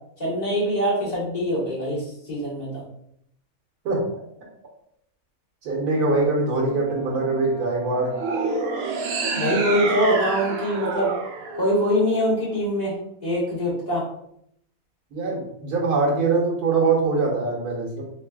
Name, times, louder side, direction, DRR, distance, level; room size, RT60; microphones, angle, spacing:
voice 1, 0.2-2.8 9.4-11.1 11.5-13.0 13.2-14.1, equal, 30° left, -8 dB, 1.6 m, -23 dB
voice 2, 5.6-8.1 15.1-18.0, right 3 dB, 90° right, -2 dB, 1.5 m, -23 dB
Brass instrument, 6.5-10.6, left 1 dB, 90° left, 1.3 m, -40 dB
sound 1, 8.1-12.5, right 4 dB, 65° right, 0.6 m, -28 dB
3.5 x 3.3 x 2.3 m, 0.71 s
omnidirectional pair, 1.6 m